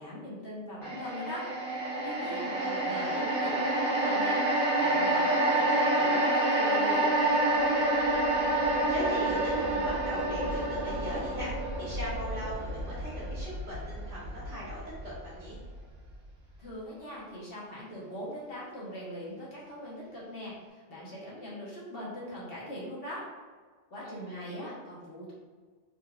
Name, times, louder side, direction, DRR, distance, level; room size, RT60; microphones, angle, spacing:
voice 1, 0.0-1.5 2.0-2.5 2.8-4.4 4.8-7.1 16.6-23.3 23.9-25.3, left 1 dB, 50° left, -7 dB, 1.3 m, -41 dB
sound 1, 0.8-15.2 15.5-15.7, right 1 dB, 80° right, 1.4 m, -28 dB
voice 2, 2.2-3.2 8.9-15.6 24.0-24.8, equal, 55° right, -13 dB, 1.7 m, -40 dB
4.0 x 2.6 x 2.3 m, 1.5 s
omnidirectional pair, 1.3 m